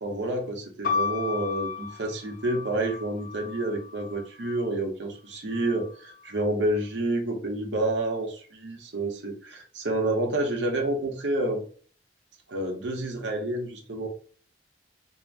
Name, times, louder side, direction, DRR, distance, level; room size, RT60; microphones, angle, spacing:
voice 1, 0.0-11.6 12.5-14.1, right 1 dB, 85° right, 2 dB, 0.7 m, -29 dB
sound 1, 0.8-4.7 5.5-6.2, left 5 dB, 50° left, 0.4 m, -34 dB
2.5 x 2.0 x 3.3 m, 0.42 s
head